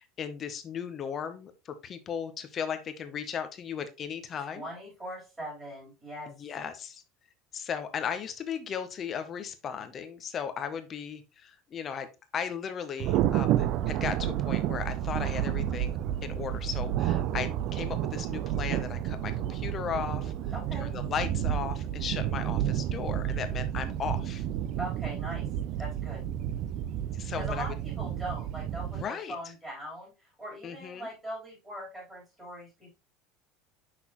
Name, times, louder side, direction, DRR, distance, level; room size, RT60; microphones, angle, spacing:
voice 1, 0.0-4.7 6.4-7.0 7.5-12.1 12.3-20.3 20.8-24.5 27.1-27.7 29.0-29.4 30.6-31.1, left 7 dB, 25° left, 8 dB, 0.6 m, -36 dB
voice 2, 4.5-6.3 20.5-20.9 24.8-25.5 25.8-26.2 27.4-32.9, right 1 dB, 10° right, -4 dB, 3.6 m, -40 dB
Thunder, 13.0-29.0, right 11 dB, 40° right, 0.4 m, -30 dB
6.1 x 5.8 x 2.9 m, 0.28 s
cardioid pair, 180°, 0 cm